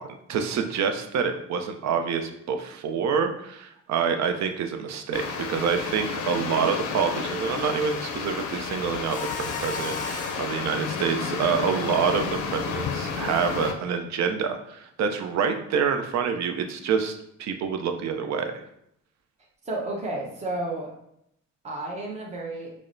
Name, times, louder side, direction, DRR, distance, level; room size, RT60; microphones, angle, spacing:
voice 1, 0.0-5.2 5.5-18.5, right 6 dB, 65° right, 6 dB, 0.5 m, -27 dB
sound 1, 5.1-13.7, left 6 dB, 80° left, 0.5 m, -31 dB
Mechanisms, 9.1-10.6, left 4 dB, 25° left, 0.5 m, -36 dB
voice 2, 19.6-20.9 21.6-22.7, right 2 dB, 20° right, -2 dB, 0.8 m, -31 dB
4.7 x 2.1 x 2.6 m, 0.75 s
cardioid pair, 90°, 30 cm